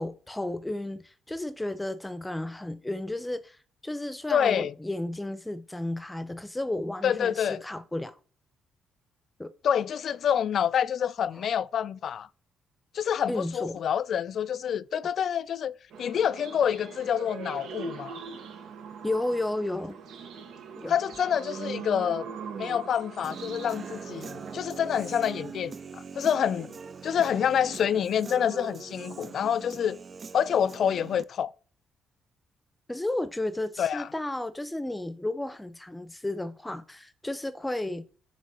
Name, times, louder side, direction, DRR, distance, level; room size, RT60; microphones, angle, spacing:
voice 1, 0.0-3.6 3.8-8.1 9.4-9.5 11.3-11.5 13.3-13.8 19.0-20.0 20.8-20.9 32.9-38.0, left 1 dB, 10° left, 0.7 m, -33 dB
voice 2, 4.3-4.7 7.0-7.6 9.6-12.3 12.9-18.2 20.9-22.3 22.6-26.7 27.0-30.0 30.3-31.5 33.8-34.1, left 8 dB, 60° left, 0.3 m, -27 dB
sound 1, 15.9-24.6, right 6 dB, 80° right, 0.9 m, -41 dB
Human voice / Guitar, 23.2-31.2, right 5 dB, 40° right, 0.4 m, -42 dB
7.2 x 3.1 x 4.1 m
cardioid pair, 90°, 0 cm